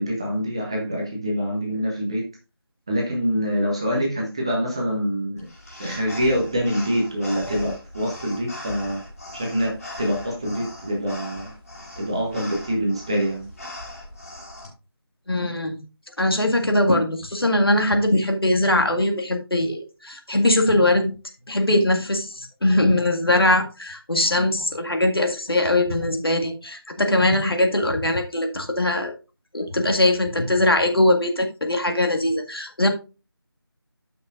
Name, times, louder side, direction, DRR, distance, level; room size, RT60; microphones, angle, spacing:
voice 1, 0.0-2.3 2.9-5.5 5.8-9.0 9.3-11.5 12.0-13.5 24.3-24.5, equal, 10° right, -1 dB, 0.9 m, -25 dB
sound 1, 5.4-14.7, left 1 dB, 35° left, 3.6 m, -39 dB
voice 2, 15.3-15.8 16.2-21.1 21.5-29.2 29.5-32.9, left 1 dB, 65° left, 4 dB, 1.9 m, -21 dB
13.0 x 5.8 x 2.5 m, 0.31 s
figure-of-eight pair, 165°, 13 cm